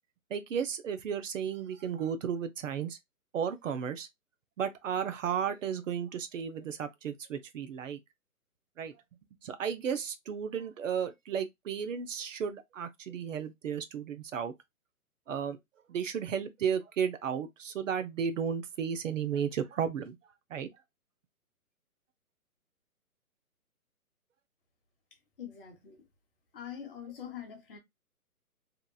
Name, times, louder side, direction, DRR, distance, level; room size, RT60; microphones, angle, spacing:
voice 1, 0.3-3.0 3.3-4.1 4.6-8.0 8.8-8.9 9.4-14.5 15.3-15.6 15.9-20.2 20.5-20.7, right 7 dB, 60° right, 0.5 m, -34 dB
voice 2, 25.4-26.0 26.5-27.8, left 9 dB, 40° left, 0.9 m, -43 dB
2.8 x 2.3 x 2.2 m
hypercardioid pair, 150°, 45 cm